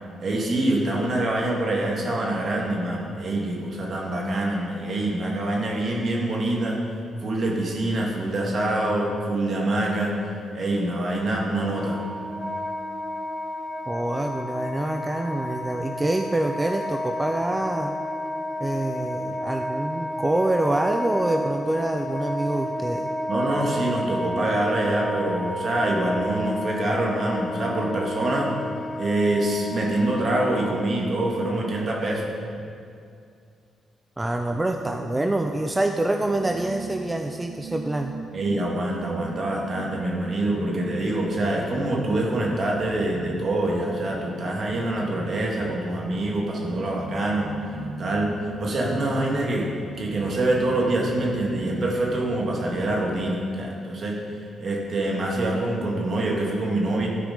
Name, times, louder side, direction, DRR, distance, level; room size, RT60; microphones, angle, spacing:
voice 1, 0.2-6.8 7.2-10.2 10.5-12.0 23.3-28.5 29.0-32.3 38.3-49.7 50.0-57.1, right 1 dB, 50° right, -1 dB, 2.0 m, -25 dB
Wind instrument woodwind instrument, 11.6-31.1, left 1 dB, 5° left, 1.0 m, -31 dB
voice 2, 13.9-18.0 18.6-23.1 34.2-38.1, right 2 dB, 15° right, 5 dB, 0.5 m, -26 dB
sound 1, 34.5-53.3, right 2 dB, 80° right, 0.8 m, -40 dB
13.0 x 5.0 x 5.2 m, 2.4 s
cardioid pair, 80°, 0 cm